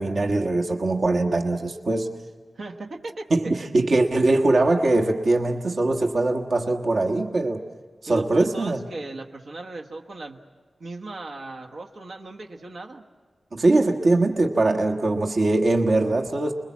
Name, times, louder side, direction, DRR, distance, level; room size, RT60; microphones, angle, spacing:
voice 1, 0.0-2.2 3.3-7.7 8.0-8.8 13.5-16.5, right 2 dB, 70° right, 2 dB, 1.4 m, -22 dB
voice 2, 2.5-3.5 8.1-10.4 10.8-13.0, right 2 dB, 85° right, 1 dB, 1.6 m, -37 dB
29.5 x 22.0 x 7.3 m, 1.5 s
wide cardioid pair, 75°, 0 cm